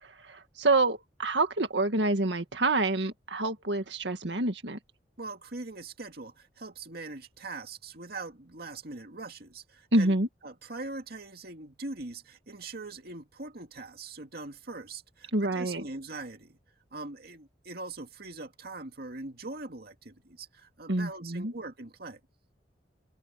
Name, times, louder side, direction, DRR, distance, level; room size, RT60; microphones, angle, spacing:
voice 1, 0.0-4.8 9.9-10.3 15.3-15.8 20.9-21.5, right 2 dB, 85° right, 1.9 m, -27 dB
voice 2, 5.2-10.2 10.4-16.6 16.9-22.2, right 3 dB, 60° right, 2.4 m, -42 dB
head